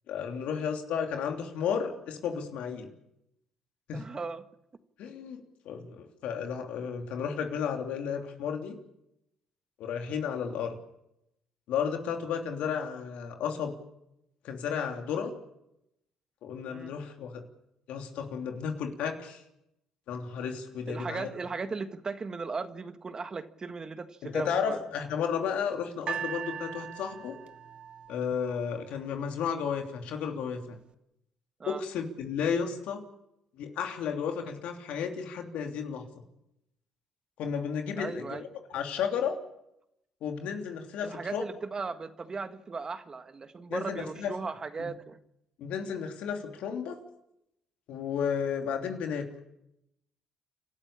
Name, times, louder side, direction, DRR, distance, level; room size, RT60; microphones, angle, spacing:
voice 1, 0.1-2.9 3.9-4.0 5.0-8.7 9.8-10.8 11.7-13.7 14.4-15.3 16.4-17.4 17.9-19.4 20.1-21.4 24.2-27.4 28.1-30.8 31.7-33.0 33.6-36.0 37.4-38.4 38.7-39.4 40.2-41.4 43.7-44.3 44.8-44.9 45.6-47.0 47.9-49.3, left 7 dB, 75° left, 4 dB, 3.1 m, -33 dB
voice 2, 3.9-4.4 16.6-17.0 20.9-24.8 31.6-31.8 38.0-38.4 41.0-45.2, right 4 dB, 35° right, 10 dB, 1.6 m, -37 dB
sound 1, 26.1-29.2 30.0-30.1, right 8 dB, 55° right, 1.2 m, -40 dB
29.0 x 13.0 x 8.7 m, 0.83 s
supercardioid pair, 75°, 2 cm